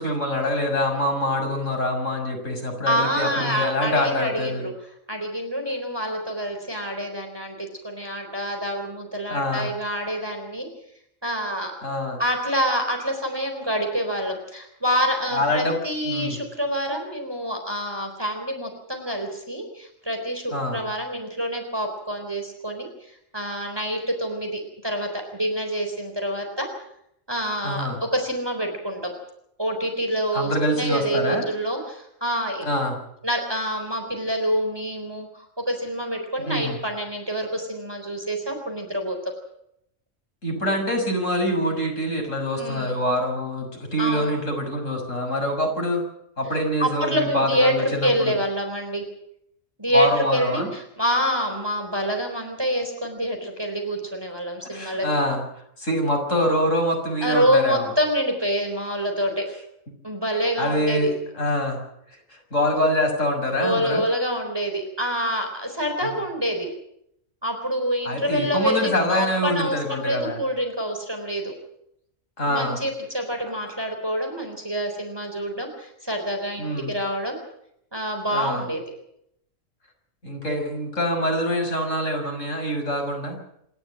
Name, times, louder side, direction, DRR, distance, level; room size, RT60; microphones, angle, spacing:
voice 1, 0.0-4.6 9.3-9.7 11.8-12.2 15.3-15.8 16.0-16.4 20.5-20.8 27.6-28.0 30.3-31.5 32.6-33.0 36.5-36.8 40.4-46.0 46.4-48.3 49.9-50.7 54.7-55.4 55.8-57.9 60.6-61.8 62.3-64.0 66.0-66.1 68.0-70.4 72.4-72.8 76.6-76.9 78.3-78.6 80.2-83.4, left 1 dB, 75° left, 2 dB, 6.7 m, -25 dB
voice 2, 2.9-4.7 5.1-10.7 11.2-11.7 12.2-26.7 27.3-29.1 29.6-32.7 33.2-39.3 42.6-43.0 44.0-44.3 46.8-49.0 49.8-55.1 57.2-59.5 60.0-61.1 63.6-66.7 67.4-71.5 72.4-77.4 77.9-78.8, equal, 20° right, 3 dB, 4.1 m, -27 dB
27.0 x 12.5 x 8.8 m, 0.75 s
omnidirectional pair, 1.3 m